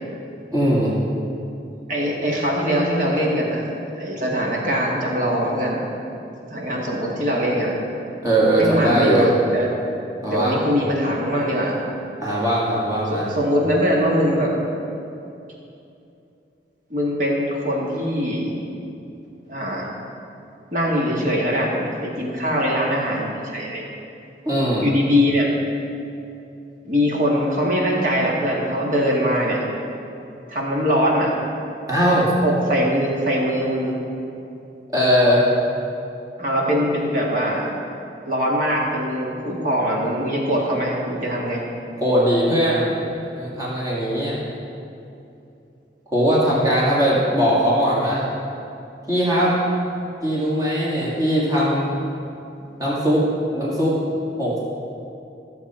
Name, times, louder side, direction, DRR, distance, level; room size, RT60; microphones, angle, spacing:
voice 1, 0.5-0.9 8.2-9.3 10.2-10.6 12.2-13.3 24.4-24.8 31.9-32.3 34.9-35.5 42.0-43.0 43.3-44.4 46.1-48.2 49.1-49.5 50.2-51.9 52.8-53.3 53.5-54.0 54.4-54.6, equal, 20° right, -6 dB, 2.0 m, -19 dB
voice 2, 1.9-3.7 4.0-5.8 6.5-7.8 8.6-9.7 10.2-11.8 13.1-14.5 16.9-18.5 19.5-19.8 20.7-23.8 24.8-25.5 26.9-29.6 30.5-31.3 32.4-34.0 36.4-37.7 38.3-41.6, equal, 45° right, -3 dB, 1.9 m, -22 dB
14.5 x 7.2 x 4.3 m, 2.7 s
head